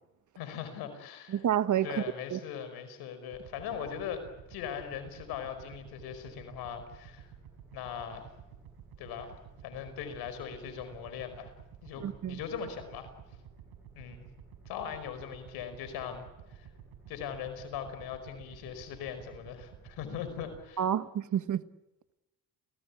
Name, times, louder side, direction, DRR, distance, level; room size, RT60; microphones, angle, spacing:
voice 1, 0.4-1.4 1.8-4.2 4.5-7.3 7.7-8.3 9.0-9.4 9.6-11.5 11.8-13.1 13.9-14.2 14.6-16.2 16.5-16.7 17.1-20.8, left 8 dB, 85° left, 5.2 m, -40 dB
voice 2, 1.3-1.9 2.3-2.4 12.0-12.4 20.8-21.6, right 10 dB, 50° right, 1.3 m, -29 dB
sound 1, 3.3-20.6, right 8 dB, 80° right, 5.9 m, -52 dB
29.0 x 18.0 x 8.5 m
supercardioid pair, 75°, 37 cm